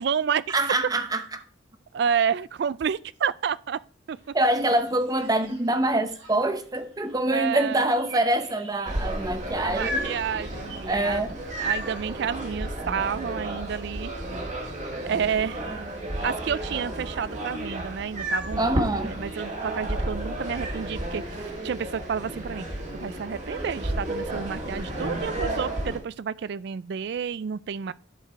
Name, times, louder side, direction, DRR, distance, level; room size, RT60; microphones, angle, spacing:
voice 1, 0.0-0.6 1.9-3.8 4.1-4.2 7.3-7.9 9.5-11.3 11.6-14.1 15.0-15.6 16.2-22.6 22.9-27.9, right 7 dB, 55° right, 0.3 m, -30 dB
voice 2, 0.5-1.4 4.3-10.1 10.9-11.4 18.6-19.1, right 1 dB, 20° right, 0.7 m, -25 dB
sound 1, 4.1-10.8, right 4 dB, 80° right, 4.3 m, -51 dB
sound 2, 8.9-26.0, right 1 dB, 35° right, 1.8 m, -32 dB
11.0 x 4.7 x 4.6 m
head